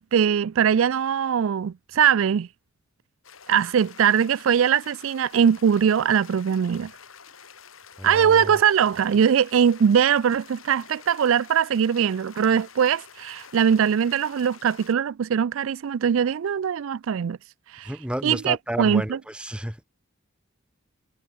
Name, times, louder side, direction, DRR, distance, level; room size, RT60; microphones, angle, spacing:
voice 1, 0.0-2.5 3.5-6.9 8.0-17.4 17.7-17.9 18.2-19.2, right 8 dB, 75° right, 0.4 m, -21 dB
sound 1, 3.2-14.9, left 7 dB, 80° left, 4.3 m, -48 dB
voice 2, 8.0-8.6 17.8-19.8, equal, 5° right, 1.2 m, -31 dB
head